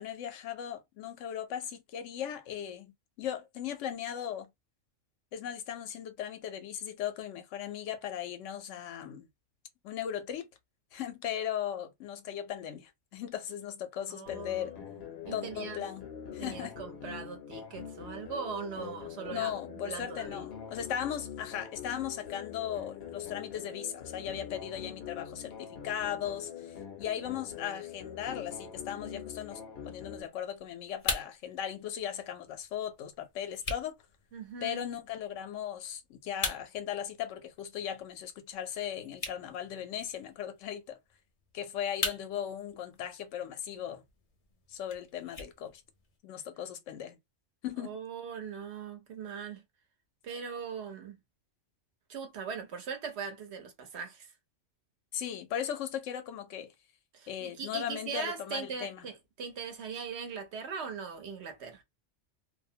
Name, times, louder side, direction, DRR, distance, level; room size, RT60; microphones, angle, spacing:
voice 1, 0.0-2.9 3.2-4.5 5.3-9.3 9.8-10.5 10.9-14.8 15.3-16.1 16.3-16.8 19.3-33.9 34.6-41.0 41.5-44.0 44.7-45.8 46.2-47.2 47.6-48.0 55.1-56.7 57.3-59.1, left 9 dB, 85° left, 0.9 m, -37 dB
voice 2, 14.1-15.8 16.4-20.4 34.3-34.9 47.8-49.6 50.2-51.2 52.1-54.3 57.1-61.8, right 6 dB, 65° right, 1.0 m, -40 dB
sound 1, 14.3-30.3, left 8 dB, 65° left, 0.8 m, -44 dB
sound 2, 30.2-46.2, left 3 dB, 45° left, 0.5 m, -43 dB
2.5 x 2.0 x 2.6 m
omnidirectional pair, 1.2 m